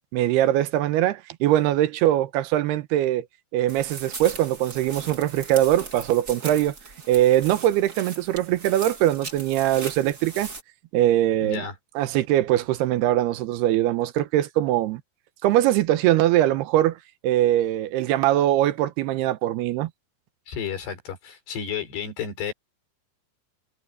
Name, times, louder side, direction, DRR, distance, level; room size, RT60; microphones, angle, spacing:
voice 1, 0.1-3.3 3.5-6.7 7.1-10.5 10.9-11.6 12.0-15.0 15.4-17.0 17.2-19.9, right 13 dB, 80° right, 3.0 m, -22 dB
sound 1, 3.7-10.6, right 3 dB, 25° right, 2.1 m, -39 dB
voice 2, 11.4-11.8 20.5-22.5, left 7 dB, 90° left, 7.0 m, -32 dB
omnidirectional pair, 4.6 m